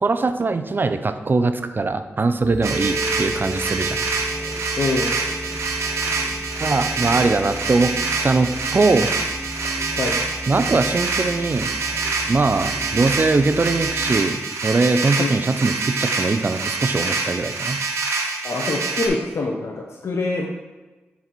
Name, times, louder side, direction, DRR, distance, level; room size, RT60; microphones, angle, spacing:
voice 1, 0.0-4.0 6.6-7.9 8.2-9.1 10.5-11.7 12.3-17.8, right 3 dB, 45° right, 9 dB, 0.5 m, -21 dB
sound 1, 2.4-14.2, equal, 10° right, 1.3 m, -33 dB
sound 2, 2.6-19.1, right 4 dB, 85° right, 1.0 m, -26 dB
voice 2, 4.8-5.1 9.9-10.2 15.2-15.3 18.4-20.5, left 3 dB, 60° left, 1 dB, 0.7 m, -25 dB
6.4 x 4.1 x 4.5 m, 1.2 s
cardioid pair, 50°, 5 cm